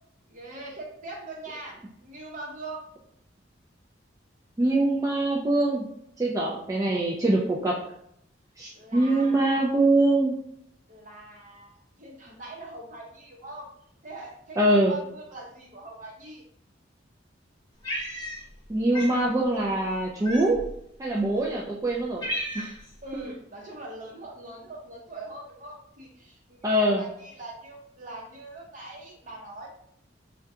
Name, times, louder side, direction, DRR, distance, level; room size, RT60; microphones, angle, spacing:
voice 1, 0.3-2.9 8.7-9.7 10.9-13.7 14.0-16.4 23.0-29.7, right 2 dB, 45° right, -1 dB, 0.7 m, -42 dB
voice 2, 4.6-5.9 6.2-7.8 8.6-10.4 14.6-14.9 18.7-20.6 21.0-22.2 22.5-22.7 26.6-27.0, right 1 dB, 20° right, -4 dB, 0.3 m, -23 dB
Cat, 17.8-18.6 18.9-19.2 20.2-20.8 21.5-21.6 21.9-22.9, equal, 25° left, 0.8 m, -33 dB
3.5 x 2.2 x 2.6 m, 0.73 s
head